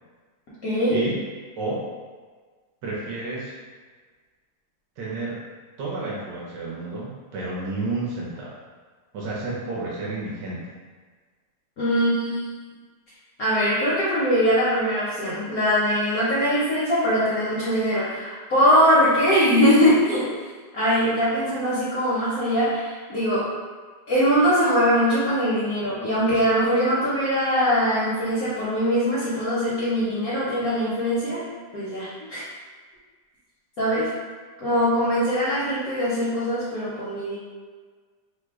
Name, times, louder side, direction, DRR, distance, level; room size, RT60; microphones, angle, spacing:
voice 1, 0.6-1.0 11.8-12.4 13.4-20.3 20.7-23.4 24.1-31.4 31.7-32.4 33.8-34.1 34.6-37.4, equal, 65° left, -9 dB, 0.9 m, -22 dB
voice 2, 2.8-3.5 5.0-5.4 5.8-8.6 9.1-10.7, right 3 dB, 70° right, -5 dB, 1.2 m, -31 dB
3.2 x 2.1 x 3.4 m, 1.5 s
omnidirectional pair, 2.2 m